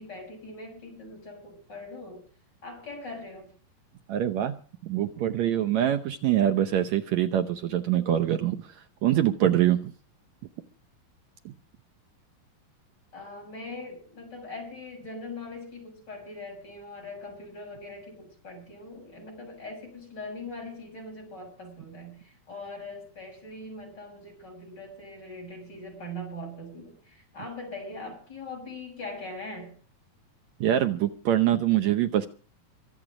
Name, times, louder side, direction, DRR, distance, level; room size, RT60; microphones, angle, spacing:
voice 1, 0.0-2.2 2.6-3.5 13.1-29.7, left 2 dB, 25° left, 2 dB, 7.6 m, -41 dB
voice 2, 4.1-4.5 4.8-9.9 11.4-11.5 30.6-32.3, right 11 dB, 75° right, 8 dB, 1.6 m, -24 dB
24.5 x 8.3 x 4.9 m, 0.42 s
omnidirectional pair, 4.1 m